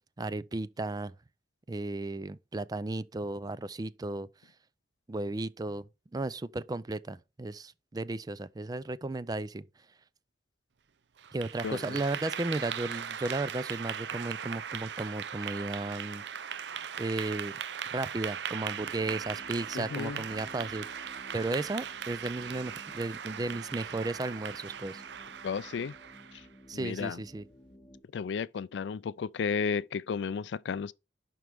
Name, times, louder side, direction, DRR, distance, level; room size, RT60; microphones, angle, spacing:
voice 1, 0.2-1.1 1.7-4.3 5.1-9.6 11.3-16.2 17.0-17.5 17.9-20.9 21.3-25.0 26.7-27.4, right 2 dB, 20° right, 0.4 m, -34 dB
Clapping / Applause, 11.2-26.5, right 8 dB, 70° right, 0.6 m, -39 dB
voice 2, 11.6-12.0 19.7-20.2 25.4-25.9 26.7-27.2 28.1-30.9, left 6 dB, 75° left, 0.4 m, -33 dB
sound 1, 18.8-28.0, equal, 10° left, 1.3 m, -54 dB
11.0 x 4.6 x 3.5 m
head